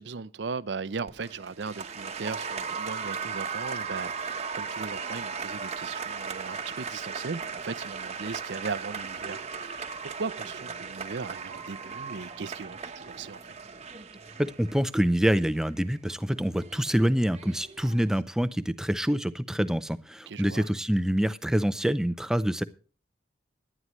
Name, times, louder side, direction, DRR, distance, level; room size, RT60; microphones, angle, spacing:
voice 1, 0.0-13.5 20.3-20.7, right 4 dB, 70° right, 0.6 m, -38 dB
Applause, 1.1-18.2, right 5 dB, 35° right, 1.1 m, -37 dB
voice 2, 14.4-22.6, equal, 5° right, 0.5 m, -26 dB
17.0 x 11.0 x 3.1 m
head